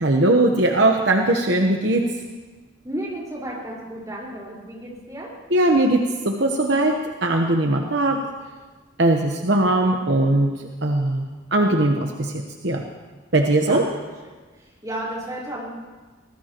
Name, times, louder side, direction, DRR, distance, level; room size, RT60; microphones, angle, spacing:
voice 1, 0.0-2.1 5.5-8.2 9.0-11.2 11.5-12.8 13.3-13.8, right 2 dB, 60° right, 2 dB, 1.1 m, -20 dB
voice 2, 2.8-5.3 13.6-14.1 14.5-15.7, right 1 dB, 20° right, -5 dB, 4.9 m, -33 dB
24.5 x 18.0 x 3.0 m, 1.3 s
head